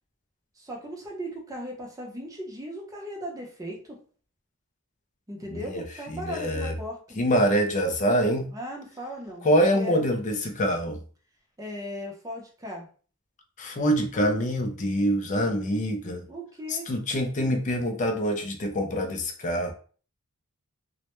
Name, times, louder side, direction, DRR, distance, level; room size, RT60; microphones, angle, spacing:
voice 1, 0.6-4.0 5.3-7.0 8.5-9.5 9.7-10.1 11.6-12.9 16.3-16.9, equal, 15° right, 0 dB, 0.6 m, -37 dB
voice 2, 5.5-5.8 6.1-6.7 7.2-8.5 9.4-11.0 13.6-16.2 16.7-19.7, equal, 35° left, 4 dB, 0.4 m, -25 dB
2.1 x 2.1 x 2.9 m, 0.41 s
head